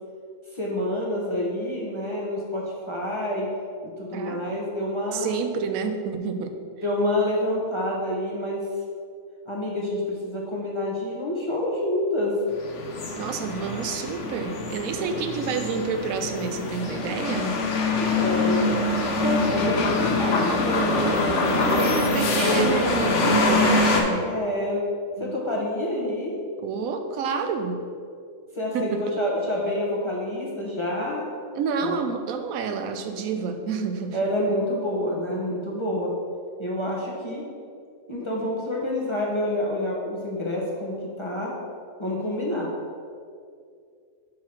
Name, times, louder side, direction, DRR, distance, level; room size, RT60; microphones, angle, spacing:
voice 1, 0.5-3.5 3.8-5.3 6.8-8.7 9.5-12.4 15.0-15.1 18.2-18.8 19.2-22.4 24.2-24.8 25.2-26.4 28.5-31.3 31.8-32.0 34.1-36.1 36.6-37.4 38.1-41.5 42.0-42.7, left 1 dB, 25° left, -4 dB, 0.8 m, -28 dB
voice 2, 4.1-4.5 5.1-6.6 13.2-17.6 21.3-24.3 25.2-25.3 26.6-27.8 28.7-29.0 31.6-34.2, right 5 dB, 85° right, 7 dB, 1.0 m, -29 dB
sound 1, 12.6-24.0, left 2 dB, 65° left, 1.1 m, -24 dB
4.7 x 4.5 x 5.8 m, 2.3 s
omnidirectional pair, 1.4 m